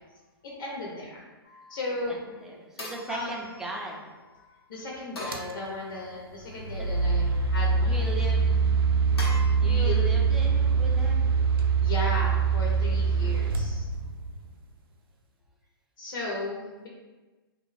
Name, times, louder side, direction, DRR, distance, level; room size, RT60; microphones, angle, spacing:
voice 1, 0.4-1.2 1.7-2.2 3.1-3.4 4.3-8.1 9.6-10.4 11.8-13.9 16.0-16.9, left 2 dB, 60° left, -3 dB, 0.8 m, -35 dB
sound 1, 1.4-1.9 2.8-4.1 5.2-6.2 6.8-7.4 9.2-9.4, left 1 dB, 90° left, 0.9 m, -42 dB
voice 2, 2.4-4.1 7.9-8.6 9.6-11.3, right 2 dB, 5° right, -2 dB, 0.3 m, -38 dB
sound 2, 5.3-5.5 6.4-14.4, right 5 dB, 65° right, 0.4 m, -24 dB
2.6 x 2.3 x 3.2 m, 1.2 s
hypercardioid pair, 135°, 13 cm